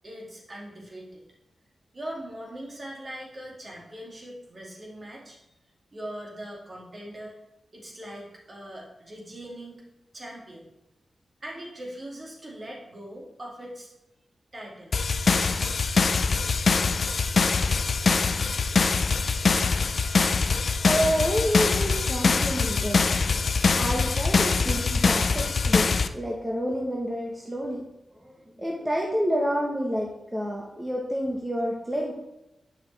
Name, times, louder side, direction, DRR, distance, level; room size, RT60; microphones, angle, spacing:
voice 1, 0.0-1.2 1.9-5.4 5.9-7.3 7.7-9.8 10.1-10.7 11.4-13.9 14.5-15.0, right 1 dB, 40° right, -3 dB, 2.2 m, -41 dB
sound 1, 14.9-26.1, left 4 dB, 65° left, 0.4 m, -23 dB
voice 2, 20.8-23.0 23.8-27.8 28.2-32.1, equal, 15° right, -2 dB, 1.2 m, -28 dB
7.6 x 5.7 x 3.3 m, 0.89 s
cardioid pair, 60°, 0 cm